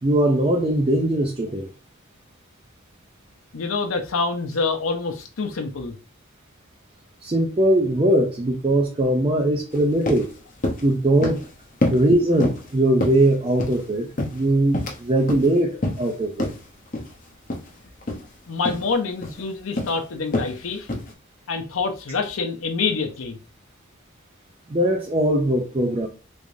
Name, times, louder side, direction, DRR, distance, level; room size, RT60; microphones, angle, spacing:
voice 1, 0.0-1.7 7.2-10.3 10.8-11.4 11.9-16.5 24.7-26.1, right 1 dB, 25° right, 0.4 m, -20 dB
voice 2, 3.5-6.0 18.5-20.9 21.5-23.4, left 4 dB, 75° left, 0.6 m, -26 dB
sound 1, 9.7-9.8 10.1-10.3 10.6-10.9 11.2-11.5 11.8-12.1 12.4-12.7 13.0-13.8 14.2-15.0 15.3-15.5 15.8-16.1 16.4-16.6 16.9-17.1 17.5-17.7 18.0-18.2 18.6-18.9 19.2-19.4 19.8-20.0 20.3-20.5 20.9-21.1, left 1 dB, 40° left, 0.7 m, -26 dB
3.5 x 3.3 x 2.6 m
head